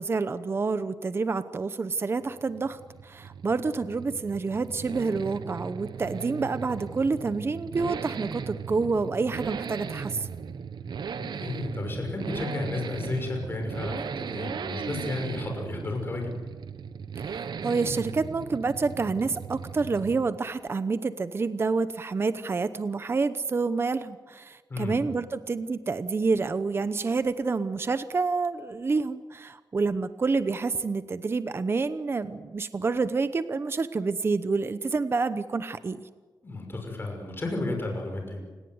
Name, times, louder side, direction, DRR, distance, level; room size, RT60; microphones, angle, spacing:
voice 1, 0.0-10.3 17.3-36.0, right 4 dB, 35° right, 12 dB, 0.8 m, -28 dB
Accelerating revving vroom, 2.2-20.4 20.7-20.8, right 6 dB, 75° right, 1.1 m, -37 dB
voice 2, 11.2-16.3 24.7-25.1 36.4-38.4, left 2 dB, 30° left, 2 dB, 6.1 m, -33 dB
29.5 x 18.5 x 9.5 m, 1.4 s
wide cardioid pair, 180°, 8 cm